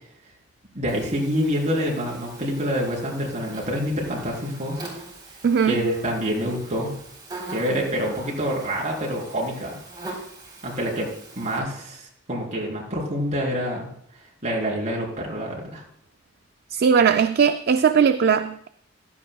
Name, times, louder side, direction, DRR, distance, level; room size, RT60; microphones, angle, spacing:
voice 1, 0.7-4.8 5.7-6.9 7.5-9.8 10.6-11.1 11.4-13.9 14.4-15.8, equal, 35° right, 3.8 m, -26 dB
Buzz, 0.9-11.6, right 2 dB, 20° right, 3.7 m, -42 dB
voice 2, 5.4-5.8 16.7-18.7, right 6 dB, 55° right, 0.4 m, -19 dB
15.5 x 12.5 x 2.3 m
head